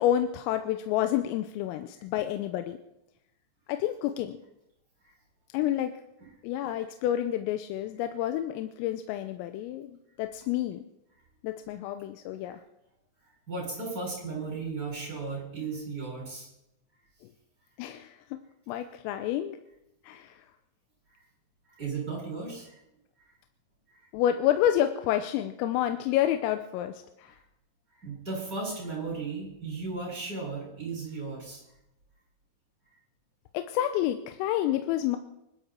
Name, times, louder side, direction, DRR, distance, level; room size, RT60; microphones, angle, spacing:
voice 1, 0.0-2.8 3.7-4.4 5.5-5.9 6.4-10.8 11.4-12.6 17.8-18.2 18.7-19.6 20.0-20.5 24.1-27.4 33.5-35.2, left 12 dB, 85° left, 8 dB, 3.4 m, -29 dB
voice 2, 13.5-16.5 21.1-21.2 21.7-22.8 27.9-31.6, right 4 dB, 20° right, -3 dB, 7.0 m, -35 dB
24.5 x 12.0 x 4.4 m, 0.85 s
omnidirectional pair, 6.0 m